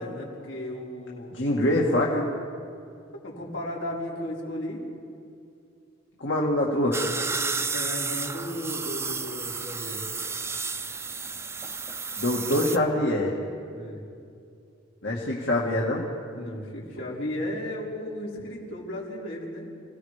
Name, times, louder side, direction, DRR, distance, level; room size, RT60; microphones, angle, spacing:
voice 1, 0.0-1.3 3.2-4.8 7.7-10.0 13.7-14.0 16.3-19.7, left 1 dB, 90° left, -4 dB, 4.9 m, -35 dB
voice 2, 1.3-2.3 6.2-7.2 12.2-13.3 15.0-16.1, left 1 dB, 70° left, -4 dB, 2.0 m, -24 dB
sound 1, 6.9-12.8, right 4 dB, 15° right, 0.6 m, -32 dB
29.0 x 18.0 x 5.1 m, 2.5 s
head